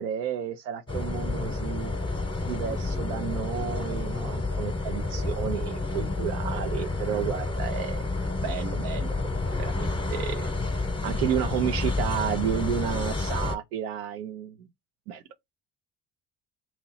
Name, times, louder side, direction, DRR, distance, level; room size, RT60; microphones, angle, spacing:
voice 1, 0.0-1.9 2.4-8.0 8.4-10.5 11.0-14.7 15.1-15.2, right 9 dB, 90° right, 0.6 m, -32 dB
sound 1, 0.9-13.6, left 3 dB, 10° left, 0.9 m, -30 dB
2.9 x 2.7 x 4.0 m
hypercardioid pair, 60°, 44 cm